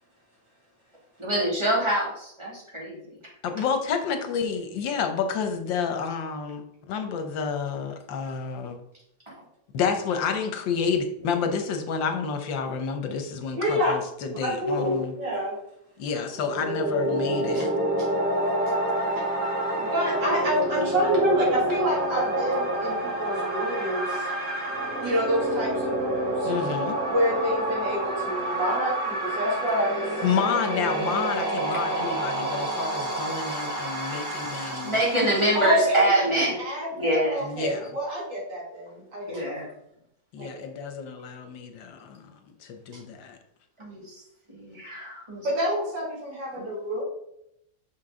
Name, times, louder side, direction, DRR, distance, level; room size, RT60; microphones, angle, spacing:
voice 1, 1.2-3.2 9.3-9.4 34.5-36.6 37.0-37.5 39.3-39.7 43.8-44.2 44.5-45.5 46.5-46.7, right 1 dB, 15° right, -4 dB, 2.5 m, -26 dB
voice 2, 3.4-8.8 9.7-15.1 16.0-17.7 26.5-27.0 30.2-35.0 37.4-37.9 40.3-43.4, left 6 dB, 85° left, 6 dB, 1.6 m, -29 dB
voice 3, 13.5-13.9 14.4-15.5 17.5-17.6 19.8-24.3 25.0-26.5 27.1-30.2 35.5-35.8 36.2-36.3 36.6-39.6 40.4-40.6 45.4-47.0, equal, 75° right, -5 dB, 3.4 m, -27 dB
sound 1, 16.3-36.1, right 1 dB, 40° right, 2.4 m, -28 dB
6.4 x 5.9 x 3.8 m, 0.77 s
omnidirectional pair, 2.0 m